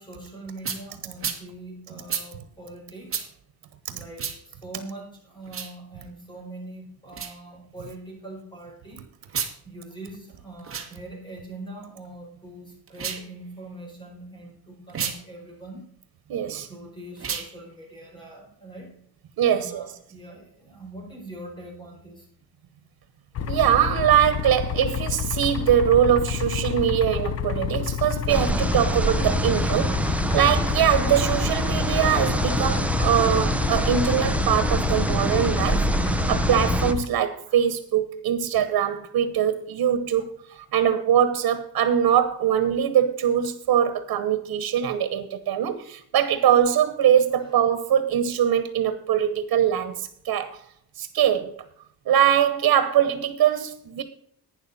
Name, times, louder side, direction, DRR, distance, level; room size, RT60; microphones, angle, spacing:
voice 1, 0.0-3.2 3.9-4.3 4.6-9.0 9.6-15.9 16.7-18.9 19.5-22.2 37.5-37.6 40.5-40.7, right 1 dB, 10° left, 4.5 m, -42 dB
sound 1, 0.6-0.8 1.2-1.4 2.1-2.3 3.1-3.3 4.2-4.4 5.4-5.7 7.1-7.3 9.2-9.5 10.6-10.9 12.9-13.3 14.9-15.2 17.2-17.5, right 7 dB, 35° right, 1.8 m, -30 dB
voice 2, 16.3-16.7 19.4-19.8 23.5-35.8 36.3-40.3 40.7-50.6 51.0-51.6 52.1-54.0, right 9 dB, 90° right, 1.2 m, -22 dB
sound 2, 23.3-37.1, left 8 dB, 45° left, 0.7 m, -29 dB
sound 3, 28.3-36.9, right 1 dB, 5° right, 0.5 m, -25 dB
11.5 x 9.6 x 4.2 m
wide cardioid pair, 175°, 36 cm